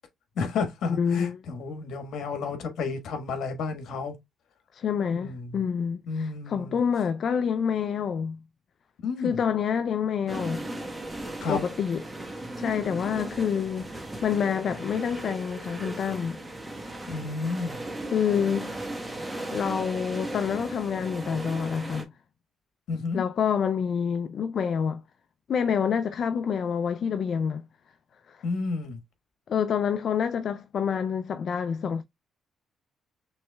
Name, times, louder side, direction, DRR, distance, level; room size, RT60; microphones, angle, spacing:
voice 1, 0.4-4.1 5.1-5.7 6.1-6.8 9.0-9.3 11.4-11.6 17.1-17.8 22.9-23.2 28.4-29.0, left 4 dB, 75° left, 1.4 m, -31 dB
voice 2, 0.9-1.4 4.7-8.4 9.2-10.6 11.5-12.0 12.6-16.4 18.1-18.9 19.5-22.1 23.1-25.0 25.5-27.6 28.3-28.4 29.5-32.0, left 7 dB, 55° left, 0.4 m, -27 dB
sound 1, 10.3-22.0, right 1 dB, 15° right, 1.1 m, -37 dB
6.0 x 3.1 x 2.2 m
cardioid pair, 90°, 0 cm